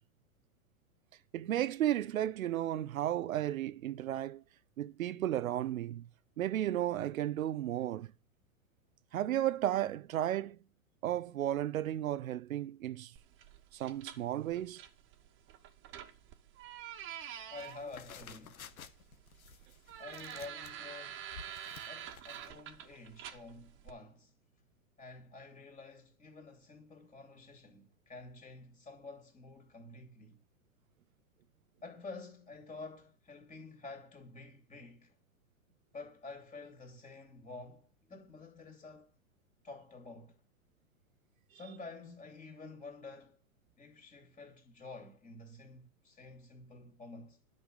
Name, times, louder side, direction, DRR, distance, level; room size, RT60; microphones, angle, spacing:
voice 1, 1.3-4.4 4.8-6.1 6.4-8.1 9.1-10.6 11.0-13.1 13.7-14.8, right 12 dB, 75° right, 0.9 m, -34 dB
sound 1, 13.2-23.9, right 10 dB, 30° right, 1.4 m, -48 dB
voice 2, 17.5-18.7 20.0-21.3 21.9-24.3 25.0-30.4 31.8-35.1 35.9-39.1 39.6-40.4 41.5-43.4 43.8-47.4, left 3 dB, 15° left, 3.0 m, -50 dB
sound 2, 17.6-22.5, left 7 dB, 85° left, 1.4 m, -53 dB
11.0 x 5.9 x 8.0 m
hypercardioid pair, 125°, 41 cm